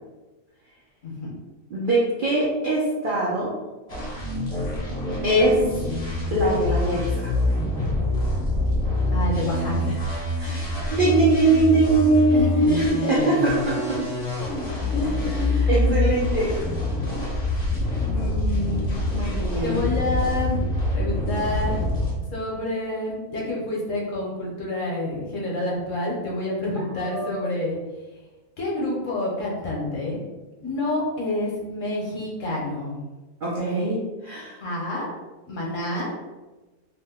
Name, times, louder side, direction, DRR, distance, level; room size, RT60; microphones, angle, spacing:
voice 1, 1.0-1.4 9.1-10.0 12.3-13.3 14.9-15.9 18.0-19.0 19.6-20.6 20.9-21.8 22.3-27.8 28.6-30.2 30.6-33.0 34.6-35.1 35.5-36.1, left 1 dB, 60° left, -3 dB, 1.1 m, -28 dB
voice 2, 1.7-3.5 5.2-5.6 6.3-7.3 10.4-10.6 10.9-14.0 15.7-16.6 19.1-19.9 27.0-27.4 33.4-34.6, right 2 dB, 70° right, -5 dB, 0.4 m, -22 dB
sound 1, 3.9-22.1, left 2 dB, 35° left, 0.7 m, -25 dB
2.9 x 2.1 x 3.4 m, 1.1 s
omnidirectional pair, 1.6 m